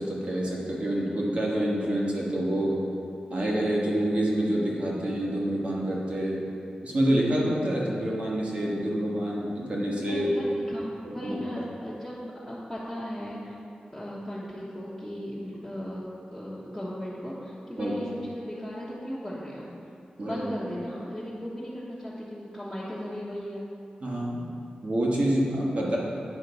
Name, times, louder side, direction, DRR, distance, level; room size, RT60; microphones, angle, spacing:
voice 1, 0.0-2.8 3.3-6.4 6.8-10.3 11.0-11.6 17.8-17.9 20.2-20.5 24.0-24.4 24.8-26.0, right 1 dB, 50° right, -4 dB, 1.4 m, -27 dB
voice 2, 10.1-12.2 12.5-13.6 13.9-19.7 20.2-23.7, equal, 5° left, -10 dB, 1.1 m, -36 dB
8.9 x 3.7 x 5.4 m, 2.6 s
wide cardioid pair, 120°, 3 cm